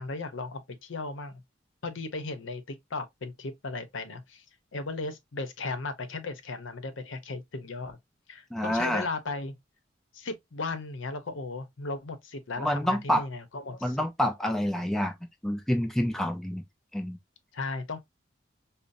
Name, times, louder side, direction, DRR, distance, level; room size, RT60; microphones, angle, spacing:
voice 1, 0.0-1.3 1.8-4.4 4.7-8.0 8.3-9.6 10.1-14.0 17.5-18.0, left 3 dB, 80° left, 0.7 m, -36 dB
voice 2, 8.5-9.1 12.6-13.3 13.8-15.1 15.4-16.6 16.9-17.2, equal, ahead, 0.4 m, -27 dB
5.3 x 2.0 x 2.6 m
head